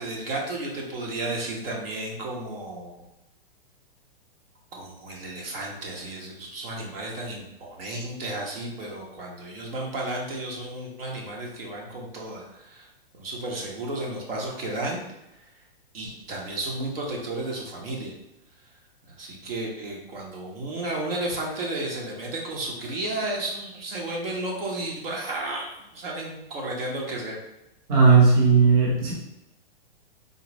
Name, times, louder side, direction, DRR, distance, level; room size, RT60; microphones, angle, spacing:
voice 1, 0.0-2.9 4.7-12.9 13.1-15.0 15.9-18.1 19.2-27.4, right 2 dB, 70° right, -2 dB, 1.1 m, -33 dB
voice 2, 27.9-29.1, right 5 dB, 40° right, -3 dB, 0.9 m, -16 dB
4.0 x 2.2 x 3.0 m, 0.91 s
hypercardioid pair, 160°, 30 cm